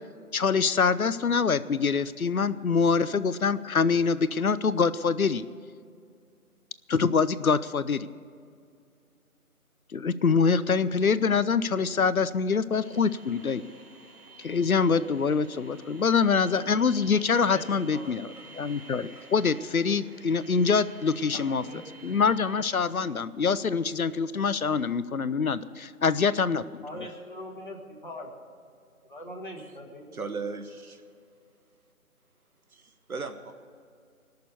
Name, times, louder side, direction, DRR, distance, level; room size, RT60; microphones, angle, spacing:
voice 1, 0.3-5.4 6.9-8.1 9.9-13.6 14.4-21.6 22.0-26.6, left 5 dB, 70° left, 15 dB, 0.7 m, -25 dB
sound 1, 12.7-22.7, right 3 dB, 90° right, 1.8 m, -51 dB
voice 2, 17.4-18.2 21.3-21.4 21.7-21.8 26.8-27.8 28.0-28.3 29.1-30.2, left 1 dB, 35° left, -1 dB, 1.9 m, -41 dB
voice 3, 30.1-31.0 32.7-33.5, right 4 dB, 70° right, 7 dB, 1.2 m, -36 dB
19.5 x 6.8 x 8.1 m, 2.3 s
figure-of-eight pair, 180°, 44 cm